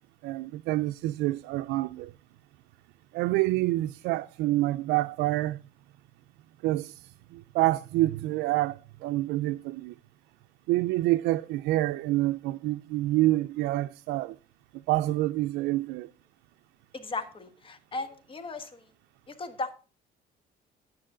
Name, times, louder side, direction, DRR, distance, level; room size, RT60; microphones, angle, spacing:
voice 1, 0.2-2.1 3.1-5.6 6.6-9.9 10.7-14.4 14.9-16.1, right 17 dB, 90° right, 0.4 m, -27 dB
voice 2, 16.9-18.8 19.3-19.7, left 3 dB, 30° left, 1.4 m, -36 dB
10.0 x 9.0 x 3.7 m
cardioid pair, 110°, 17 cm